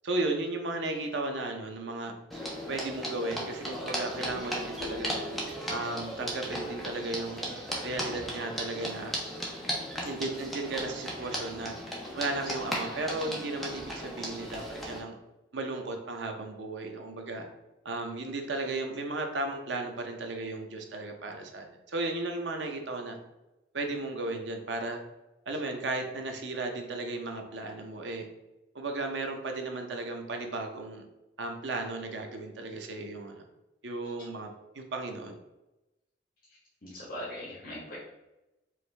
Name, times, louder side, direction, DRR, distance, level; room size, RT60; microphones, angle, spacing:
voice 1, 0.0-2.1 2.7-5.2 5.7-7.5 7.8-9.1 10.0-11.7 12.2-15.2 15.5-17.5 17.8-23.2 23.7-25.0 25.5-28.3 28.7-31.1 31.4-33.4 33.8-34.5 34.7-35.4, right 2 dB, 90° right, 4 dB, 0.7 m, -35 dB
sound 1, 2.3-15.0, equal, ahead, 0.7 m, -36 dB
voice 2, 36.5-38.0, left 1 dB, 50° left, -7 dB, 1.2 m, -41 dB
4.8 x 2.6 x 3.3 m, 0.96 s
head